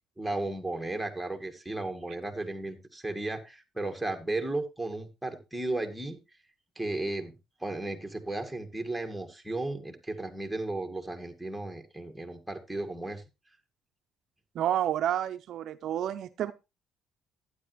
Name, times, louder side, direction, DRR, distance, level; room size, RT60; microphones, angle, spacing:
voice 1, 0.2-6.2 6.8-7.3 7.6-13.2, right 2 dB, ahead, 4 dB, 1.9 m, -34 dB
voice 2, 14.6-16.5, right 11 dB, 65° right, 10 dB, 0.5 m, -29 dB
12.0 x 9.6 x 3.0 m, 0.25 s
cardioid pair, 100°, 0 cm